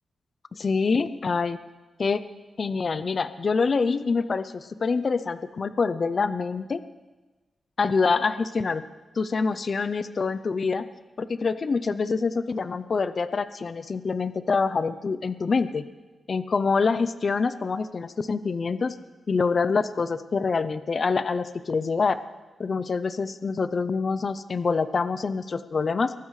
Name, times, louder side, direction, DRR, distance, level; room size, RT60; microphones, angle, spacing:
voice 1, 0.5-1.6 2.0-2.2 2.6-6.8 7.8-8.8 9.2-10.9 11.2-15.8 16.3-18.9 19.3-22.2 22.6-26.1, left 4 dB, 50° left, 13 dB, 0.5 m, -26 dB
22.5 x 13.0 x 3.2 m, 1.2 s
wide cardioid pair, 110°, 0 cm